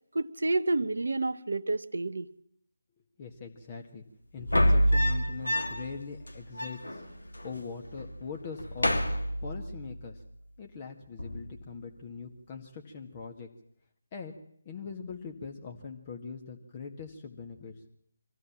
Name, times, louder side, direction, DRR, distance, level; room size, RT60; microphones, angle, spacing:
voice 1, 0.1-2.3, right 2 dB, 70° right, 10 dB, 1.2 m, -29 dB
voice 2, 3.2-4.0 4.3-7.0 7.4-9.0 9.4-10.2 10.6-13.5 14.1-14.3 14.7-17.7, left 5 dB, 30° left, 3 dB, 1.9 m, -42 dB
sound 1, 4.4-6.0 6.3-6.4 6.5-7.5 7.8-8.2 8.5-9.9 11.2-11.6, equal, 80° left, 2.9 m, -27 dB
24.5 x 16.0 x 7.5 m, 0.68 s
figure-of-eight pair, 155°, 0 cm